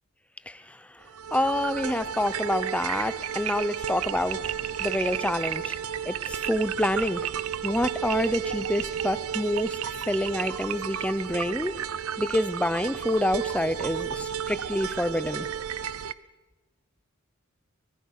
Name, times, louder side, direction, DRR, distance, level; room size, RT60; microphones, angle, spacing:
voice 1, 0.5-4.4 4.8-5.8 6.0-7.3 7.6-11.7 12.2-15.5, left 1 dB, 5° left, 14 dB, 0.6 m, -27 dB
sound 1, 1.1-16.1, right 9 dB, 75° right, 0.6 m, -32 dB
23.5 x 21.0 x 6.6 m, 1.2 s
head